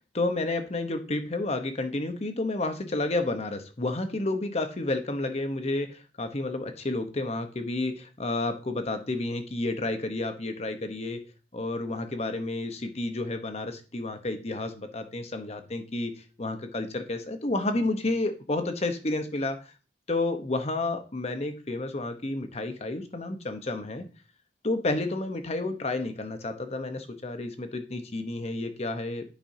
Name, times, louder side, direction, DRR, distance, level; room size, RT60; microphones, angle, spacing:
voice 1, 0.1-11.2 11.5-16.1 16.4-19.6 20.1-24.0 24.6-29.2, left 2 dB, 35° left, 7 dB, 0.9 m, -30 dB
10.5 x 5.2 x 2.7 m, 0.33 s
head